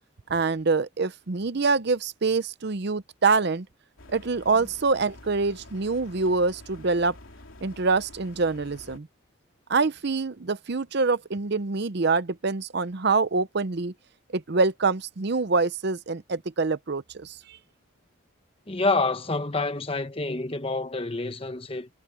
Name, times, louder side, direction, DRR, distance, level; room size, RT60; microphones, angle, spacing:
voice 1, 0.3-3.7 4.1-7.2 7.6-9.1 9.7-13.9 14.3-17.6, right 4 dB, 55° right, 0.7 m, -25 dB
sound 1, 4.0-9.0, left 2 dB, 80° left, 3.0 m, -48 dB
voice 2, 18.7-21.9, left 3 dB, 25° left, 1.1 m, -27 dB
head